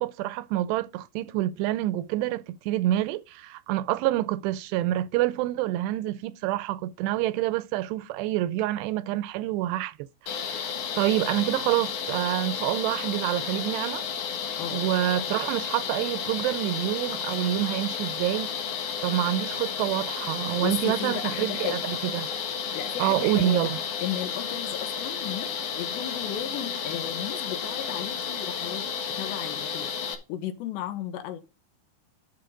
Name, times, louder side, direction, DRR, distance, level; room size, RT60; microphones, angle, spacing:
voice 1, 0.0-10.0 10.2-14.0 14.7-18.5 19.0-22.3 23.0-23.8, right 14 dB, 85° right, 2.7 m, -27 dB
sound 1, 10.3-30.2, left 7 dB, 70° left, 3.2 m, -32 dB
voice 2, 20.6-21.9 22.7-23.7 24.0-28.9 29.2-29.9 30.3-31.4, left 11 dB, 85° left, 3.3 m, -34 dB
11.0 x 6.3 x 3.8 m
omnidirectional pair, 4.9 m